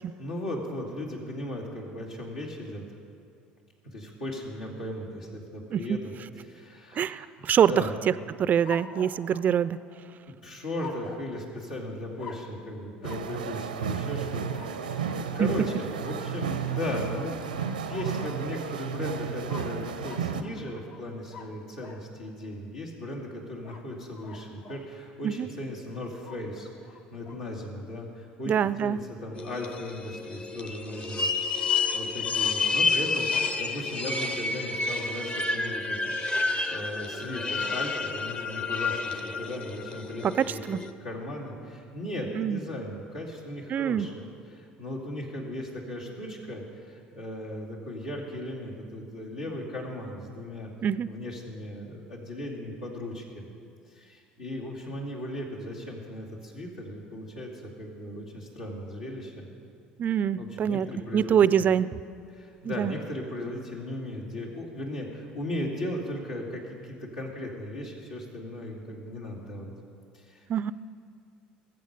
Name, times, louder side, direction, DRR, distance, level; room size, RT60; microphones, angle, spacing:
voice 1, 0.2-2.8 3.9-6.1 6.4-8.0 10.4-28.5 28.8-31.3 31.9-40.6 41.0-44.2 44.5-50.7 51.1-53.5 53.9-59.5 60.4-61.7 62.3-69.7 70.1-70.5, left 1 dB, 80° left, -4 dB, 2.7 m, -37 dB
voice 2, 7.0-7.7 8.4-9.8 15.4-15.5 25.2-25.5 28.5-29.0 40.2-40.8 42.4-42.6 43.7-44.1 50.8-51.1 60.0-60.9 61.1-61.9 62.7-63.0 70.5-70.7, right 9 dB, 40° right, 17 dB, 0.4 m, -25 dB
sound 1, 8.6-10.2 10.8-11.3 12.2-12.6 13.0-13.3 14.5-15.1 17.5-18.7 19.4-22.1 23.6-24.9 26.2-27.4, left 5 dB, 65° left, 1.3 m, -46 dB
sound 2, 13.0-20.4, right 7 dB, 85° right, 0.6 m, -33 dB
sound 3, 29.4-40.9, left 4 dB, 25° left, 0.9 m, -30 dB
21.0 x 7.8 x 5.2 m, 2.4 s
hypercardioid pair, 65°, 4 cm